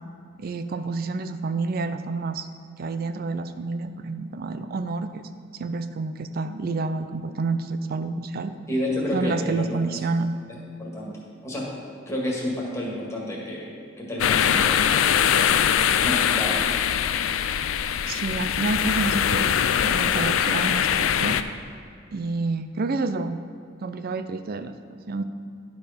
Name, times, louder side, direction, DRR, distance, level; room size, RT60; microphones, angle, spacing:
voice 1, 0.4-2.5 2.8-5.2 5.6-8.6 9.1-10.4 18.1-19.6 19.8-21.4 22.1-23.4 23.8-25.2, right 3 dB, 50° right, 10 dB, 0.4 m, -29 dB
voice 2, 8.7-9.8 10.8-11.1 11.4-11.6 12.1-13.7 14.0-14.8 16.0-16.6, left 1 dB, 15° left, -4 dB, 1.9 m, -29 dB
sound 1, 14.2-21.4, left 8 dB, 85° left, 0.4 m, -22 dB
11.5 x 4.7 x 5.1 m, 2.3 s
head